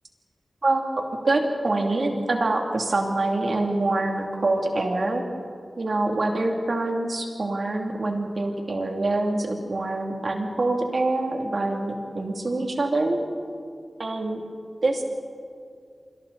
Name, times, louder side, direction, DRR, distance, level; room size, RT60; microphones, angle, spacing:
voice 1, 0.6-5.2 5.8-13.2 14.0-14.4 14.8-15.0, right 2 dB, 65° right, 1 dB, 2.8 m, -25 dB
28.0 x 25.5 x 4.2 m, 2.3 s
wide cardioid pair, 75°, 0 cm